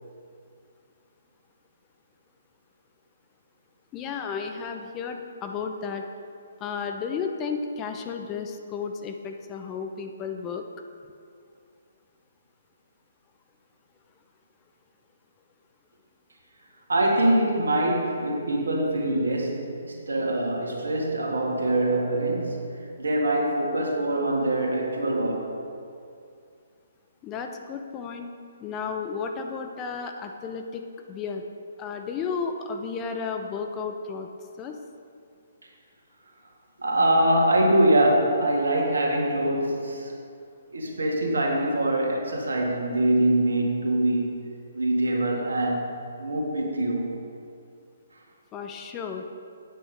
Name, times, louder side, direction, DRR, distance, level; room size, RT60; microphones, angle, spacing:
voice 1, 3.9-6.0 6.6-10.7 27.2-28.3 28.6-30.8 31.1-31.4 31.8-34.3 34.6-34.8 48.5-49.2, left 5 dB, 20° left, 4 dB, 0.7 m, -33 dB
voice 2, 16.9-22.7 23.0-25.5 36.8-40.1 40.7-44.4 44.7-45.9 46.2-47.1, right 1 dB, 75° right, 0 dB, 2.0 m, -24 dB
8.9 x 8.4 x 5.2 m, 2.3 s
figure-of-eight pair, 135°, 0 cm